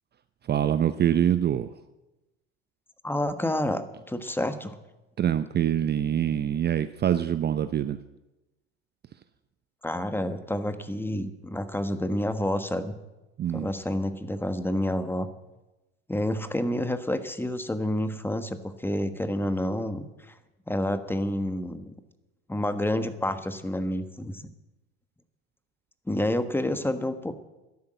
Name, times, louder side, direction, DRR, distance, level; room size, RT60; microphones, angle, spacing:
voice 1, 0.5-1.7 5.2-8.0 13.4-13.7, right 10 dB, 30° right, 12 dB, 0.7 m, -25 dB
voice 2, 3.0-4.7 9.8-12.9 13.5-15.3 16.1-20.1 20.7-21.9 22.5-24.5 26.1-27.3, left 1 dB, 5° left, 10 dB, 1.3 m, -29 dB
12.5 x 10.5 x 7.9 m, 1.0 s
hypercardioid pair, 80°, 32 cm